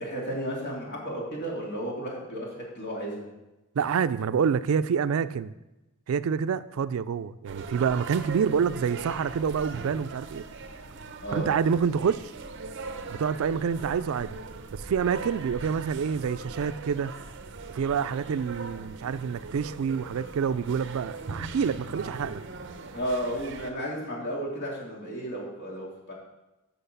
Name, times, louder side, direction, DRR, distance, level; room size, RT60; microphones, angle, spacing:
voice 1, 0.0-3.3 11.2-11.5 22.9-26.1, equal, 50° left, -3 dB, 2.8 m, -33 dB
voice 2, 3.8-5.5 6.1-10.5 11.3-12.3 13.1-14.4 14.7-17.1 17.7-22.4, right 6 dB, 75° right, 13 dB, 0.4 m, -27 dB
sound 1, 7.5-23.7, right 4 dB, 55° right, 0.7 m, -40 dB
7.8 x 6.2 x 6.7 m, 1.0 s
head